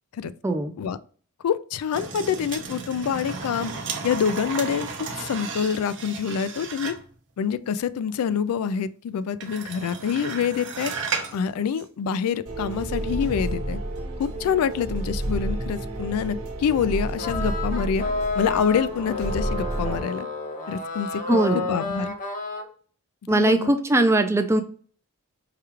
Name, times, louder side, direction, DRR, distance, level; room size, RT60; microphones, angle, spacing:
voice 1, 1.4-3.7 4.0-7.0 7.4-10.9 11.3-13.8 14.2-18.0 18.4-20.3 20.7-21.4 21.7-22.1 23.3-23.8, left 7 dB, 70° left, 0.3 m, -26 dB
sound 1, 1.9-7.1 9.4-11.4 11.7-11.8, right 5 dB, 55° right, 0.7 m, -34 dB
sound 2, 12.4-20.0, right 1 dB, 80° right, 1.0 m, -30 dB
sound 3, 17.2-22.7, left 3 dB, 35° left, 0.7 m, -30 dB
voice 2, 21.3-21.7 23.3-24.6, right 1 dB, 10° right, 0.4 m, -20 dB
4.8 x 2.3 x 3.0 m
head